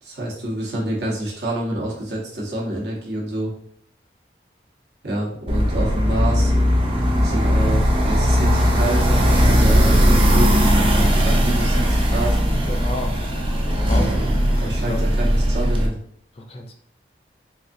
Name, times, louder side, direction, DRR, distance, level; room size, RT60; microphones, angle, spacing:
voice 1, 0.0-3.5 5.0-6.5 7.2-12.4 13.9-14.3 14.6-16.0, right 1 dB, 70° right, -3 dB, 1.0 m, -27 dB
sound 1, 5.5-15.9, equal, 30° right, 0.5 m, -18 dB
voice 2, 12.7-13.2 13.5-14.3 14.6-15.0 16.3-16.7, left 1 dB, 30° left, 3 dB, 0.4 m, -33 dB
3.9 x 2.6 x 2.6 m, 0.65 s
head